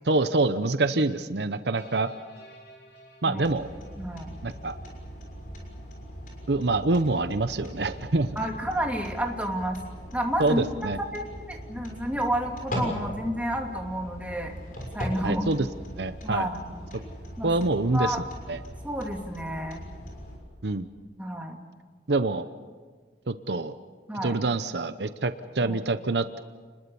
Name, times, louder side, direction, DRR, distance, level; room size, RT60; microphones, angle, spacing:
voice 1, 0.0-2.1 3.2-3.7 4.4-4.8 6.5-8.3 10.4-11.0 15.2-15.7 16.0-16.5 17.4-18.2 18.5-18.6 20.6-20.9 22.1-22.5 23.3-23.7 24.2-26.4, right 3 dB, 70° right, 11 dB, 0.8 m, -26 dB
sound 1, 1.8-5.1, left 1 dB, 75° left, 5.3 m, -53 dB
sound 2, 3.4-20.4, equal, 50° left, 6.6 m, -39 dB
voice 2, 4.0-4.3 8.4-9.8 10.1-14.5 14.9-15.5 16.2-16.7 17.4-17.5 17.9-18.2 18.8-19.8 21.2-21.6 24.1-24.4 25.6-25.8, equal, 10° right, 1 dB, 2.7 m, -30 dB
30.0 x 21.0 x 7.1 m, 1.5 s
head